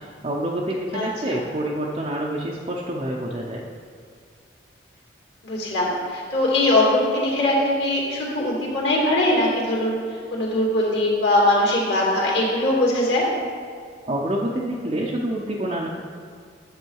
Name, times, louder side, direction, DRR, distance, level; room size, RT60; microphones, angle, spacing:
voice 1, 0.2-3.6 14.1-15.9, right 1 dB, 35° right, -3 dB, 0.6 m, -27 dB
voice 2, 0.9-1.4 5.4-10.0 10.3-13.2, left 1 dB, 65° left, -4 dB, 2.4 m, -21 dB
9.9 x 7.3 x 4.7 m, 2.2 s
head